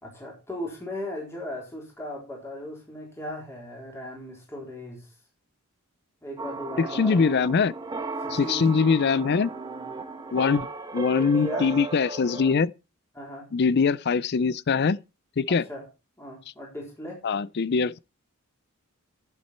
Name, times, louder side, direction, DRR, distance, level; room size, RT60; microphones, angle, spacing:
voice 1, 0.0-5.1 6.2-7.3 8.2-8.9 11.2-11.7 13.1-13.5 15.5-15.8 16.2-17.2, left 1 dB, 10° left, 3.9 m, -37 dB
sound 1, 6.4-12.5, right 3 dB, 20° right, 1.1 m, -35 dB
voice 2, 6.9-7.7 8.3-9.5 10.3-10.7 10.9-12.7 13.5-15.0 15.4-15.6 17.2-18.0, left 5 dB, 50° left, 0.4 m, -22 dB
11.5 x 7.5 x 4.4 m
head